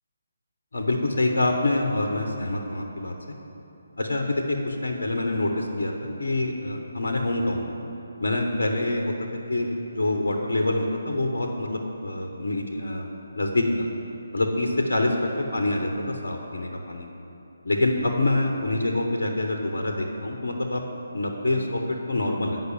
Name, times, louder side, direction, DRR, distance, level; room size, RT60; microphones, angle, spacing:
voice 1, 0.7-3.3 4.0-7.8 8.2-9.1 9.5-13.1 13.3-13.9 14.3-17.1 17.6-20.8 21.1-22.6, left 2 dB, 70° left, 3 dB, 0.9 m, -26 dB
8.0 x 5.5 x 7.2 m, 2.9 s
figure-of-eight pair, 145°, 0 cm